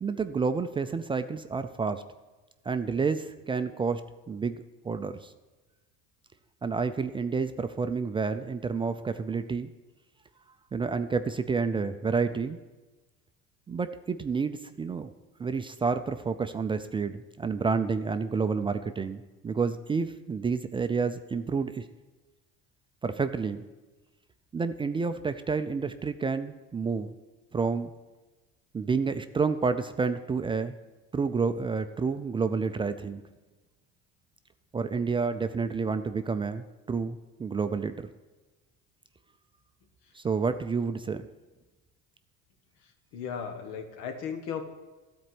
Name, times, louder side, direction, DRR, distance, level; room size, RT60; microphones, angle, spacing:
voice 1, 0.0-2.0 2.7-4.0 4.3-5.3 6.6-9.7 10.7-12.6 13.7-15.1 15.4-21.8 23.0-23.6 24.5-27.1 27.5-27.9 28.7-30.7 31.1-33.2 34.7-38.1 40.2-41.3, right 5 dB, 15° right, 9 dB, 0.4 m, -29 dB
voice 2, 42.8-44.6, left 7 dB, 75° left, 7 dB, 1.3 m, -37 dB
12.5 x 4.5 x 7.7 m, 1.2 s
supercardioid pair, 105°, 30 cm